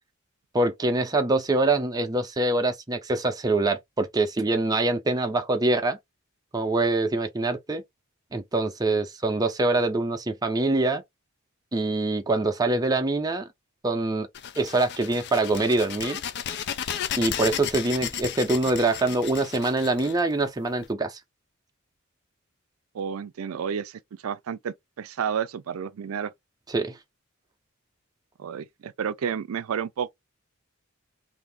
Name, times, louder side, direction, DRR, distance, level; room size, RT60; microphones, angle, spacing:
voice 1, 0.5-6.0 6.5-7.8 8.3-11.0 11.7-13.5 13.8-14.3 14.6-16.2 17.2-21.2 26.7-26.9, right 2 dB, 20° right, 0.6 m, -24 dB
sound 1, 14.3-20.9, left 9 dB, 55° left, 0.4 m, -34 dB
voice 2, 22.9-26.3 28.4-30.1, right 7 dB, 90° right, 0.4 m, -31 dB
2.6 x 2.5 x 3.4 m
head